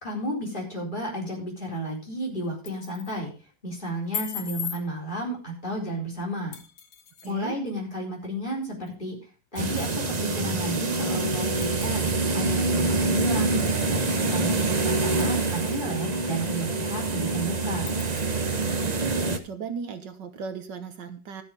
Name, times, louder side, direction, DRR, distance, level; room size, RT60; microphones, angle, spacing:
voice 1, 0.0-3.3 3.6-6.6 7.3-9.2 9.5-12.0 12.3-13.6 13.9-17.9, equal, 25° left, -2 dB, 4.5 m, -32 dB
sound 1, 2.4-3.2 4.1-4.8 6.5-7.3 8.9-9.0 9.6-9.9 10.6-10.7 11.6-11.9 13.2-13.9 14.3-14.4 15.2-15.9 16.4-16.5 16.9-17.0 17.9-18.2, left 7 dB, 70° left, 1.8 m, -38 dB
voice 2, 7.2-7.6 18.9-21.4, right 5 dB, 70° right, 8 dB, 1.8 m, -36 dB
sound 2, 9.6-19.4, right 3 dB, 35° right, 0.7 m, -26 dB
13.5 x 7.0 x 5.2 m, 0.36 s
omnidirectional pair, 2.1 m